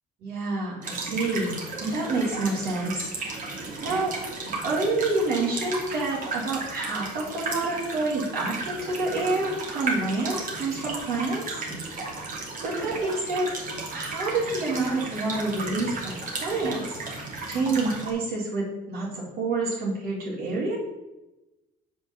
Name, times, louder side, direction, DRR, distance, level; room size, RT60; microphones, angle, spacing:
voice 1, 0.2-3.1 3.8-4.1 4.6-11.6 12.6-13.5 13.9-17.0 17.5-20.8, right 3 dB, 70° right, -6 dB, 3.9 m, -28 dB
sound 1, 0.8-18.1, right 3 dB, 50° right, 2.8 m, -34 dB
7.6 x 5.7 x 7.6 m, 1.0 s
cardioid pair, 110°, 17 cm